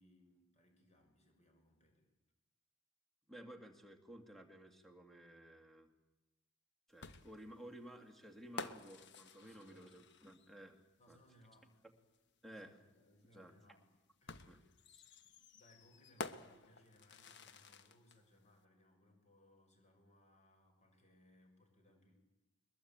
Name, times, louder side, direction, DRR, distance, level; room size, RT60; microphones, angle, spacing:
voice 1, 0.0-2.1 9.4-10.0 11.0-11.8 12.5-13.9 14.2-14.6 15.2-22.1, left 1 dB, 35° left, 3 dB, 6.2 m, -68 dB
voice 2, 3.3-5.9 6.9-10.8 11.1-11.2 12.4-12.8 13.3-13.5 14.5-14.6 14.9-15.0, right 1 dB, ahead, 5 dB, 2.3 m, -55 dB
sound 1, 7.0-10.7 12.1-12.2 14.3-18.2, left 4 dB, 60° left, 1.2 m, -51 dB
22.0 x 21.5 x 8.8 m, 1.0 s
head